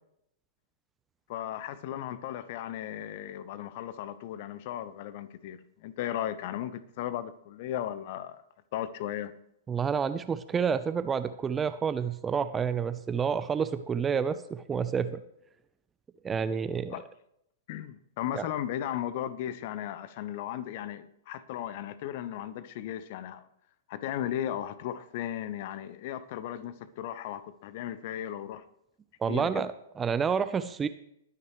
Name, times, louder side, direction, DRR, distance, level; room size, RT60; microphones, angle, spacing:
voice 1, 1.3-8.4 8.7-9.3 16.9-17.1 17.7-23.4 23.9-28.6 29.3-29.7, left 11 dB, 45° left, 1.1 m, -36 dB
voice 2, 9.7-15.2 16.2-16.9 18.3-18.4 29.2-30.9, right 6 dB, 15° right, 0.7 m, -29 dB
21.5 x 9.7 x 3.2 m
figure-of-eight pair, 105°, 0 cm